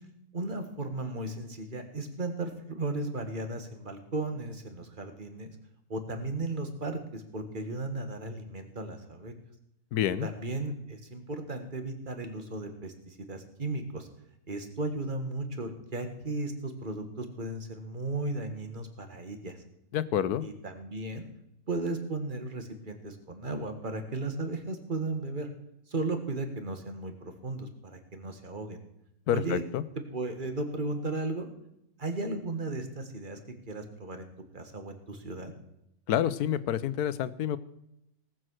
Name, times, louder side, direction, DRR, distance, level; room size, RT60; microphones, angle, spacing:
voice 1, 0.3-5.5 5.9-9.3 10.2-14.1 14.5-19.6 20.4-21.3 21.7-25.5 25.9-28.8 29.3-29.6 30.1-31.5 32.0-33.4 33.7-34.3 34.5-35.5, right 2 dB, 35° right, 7 dB, 1.8 m, -35 dB
voice 2, 9.9-10.3 19.9-20.5 29.3-29.8 36.1-37.6, left 10 dB, 85° left, 16 dB, 1.3 m, -28 dB
18.5 x 7.6 x 6.3 m, 0.81 s
omnidirectional pair, 1.6 m